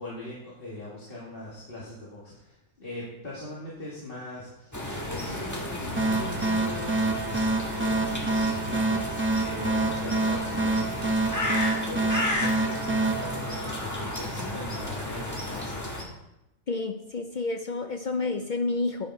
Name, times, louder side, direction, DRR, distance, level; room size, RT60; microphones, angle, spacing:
voice 1, 0.0-4.7 5.0-10.9 11.3-15.8, left 1 dB, 40° left, -7 dB, 2.2 m, -40 dB
sound 1, 4.7-16.0, left 1 dB, 15° left, 1.4 m, -33 dB
sound 2, 6.0-14.3, right 2 dB, 10° right, 0.7 m, -27 dB
voice 2, 16.7-19.1, left 3 dB, 70° left, 5 dB, 0.4 m, -30 dB
10.0 x 6.8 x 4.6 m, 0.91 s
omnidirectional pair, 1.5 m